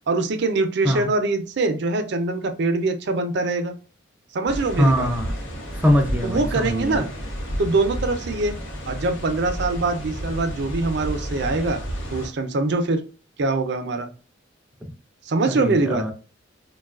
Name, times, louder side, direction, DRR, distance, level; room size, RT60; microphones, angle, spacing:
voice 1, 0.1-3.7 4.3-5.1 6.2-7.1 7.6-8.5 8.9-11.8 12.1-13.0 13.4-14.1 15.3-16.0, right 3 dB, 60° right, 7 dB, 0.5 m, -23 dB
sound 1, 4.5-12.3, equal, 90° left, 0.9 m, -31 dB
voice 2, 4.8-5.3 5.7-7.0 15.5-16.1, equal, 10° right, 5 dB, 0.4 m, -22 dB
3.4 x 2.3 x 2.3 m, 0.36 s
head